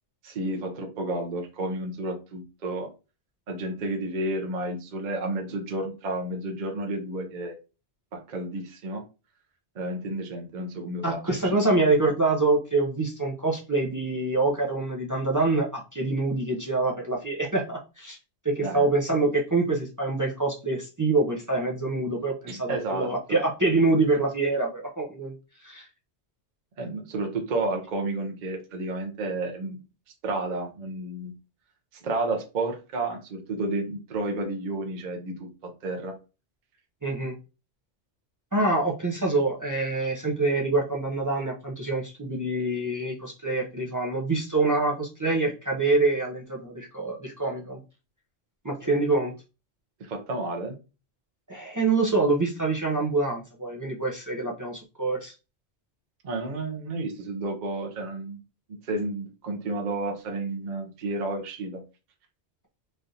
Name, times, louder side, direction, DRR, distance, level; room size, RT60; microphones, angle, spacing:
voice 1, 0.2-2.9 3.5-7.6 8.1-9.0 9.7-11.6 18.6-18.9 22.5-23.1 26.8-29.8 30.2-31.3 32.0-36.2 50.0-50.8 56.2-58.4 58.8-61.8, right 2 dB, 50° right, 3 dB, 0.7 m, -31 dB
voice 2, 11.0-18.2 18.4-25.3 25.6-25.9 37.0-37.3 38.5-47.8 48.6-49.3 51.5-55.3, right 3 dB, 30° right, -2 dB, 0.3 m, -25 dB
3.2 x 2.4 x 2.7 m, 0.31 s
omnidirectional pair, 1.2 m